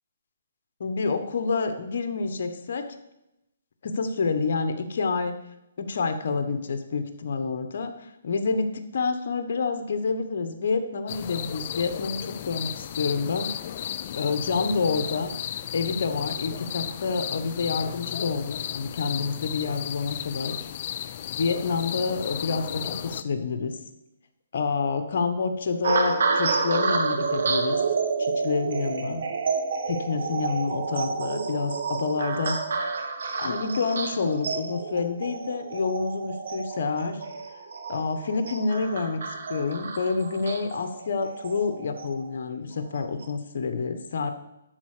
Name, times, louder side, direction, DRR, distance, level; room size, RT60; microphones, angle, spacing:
voice 1, 0.8-2.9 3.8-5.4 5.8-13.5 13.8-15.3 15.7-20.6 21.3-23.8 24.5-27.8 28.2-29.2 29.9-32.6 33.4-37.2 37.9-39.2 39.5-44.3, left 4 dB, 60° left, 7 dB, 1.2 m, -28 dB
sound 1, 11.1-23.2, left 10 dB, 40° left, 0.4 m, -34 dB
sound 2, 25.8-42.3 43.0-43.3, right 4 dB, 70° right, 1.7 m, -29 dB
12.0 x 4.3 x 6.7 m, 0.90 s
hypercardioid pair, 155°, 0 cm